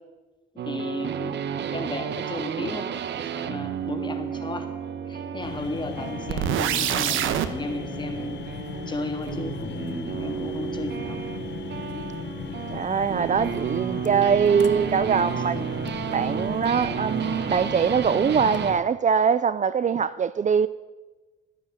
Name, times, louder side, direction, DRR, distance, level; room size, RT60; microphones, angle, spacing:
voice 1, 0.6-2.9 3.2-4.7 5.1-8.4 8.9-11.2, left 2 dB, 25° left, 3.1 m, -34 dB
sound 1, 0.6-18.8, right 8 dB, 60° right, 1.2 m, -33 dB
sound 2, 5.4-18.8, left 8 dB, 65° left, 1.2 m, -37 dB
sound 3, 6.3-7.5, right 10 dB, 85° right, 1.2 m, -24 dB
voice 2, 12.7-15.6 16.1-20.7, right 7 dB, 40° right, 0.6 m, -22 dB
14.0 x 9.8 x 9.3 m
cardioid pair, 90°, 20 cm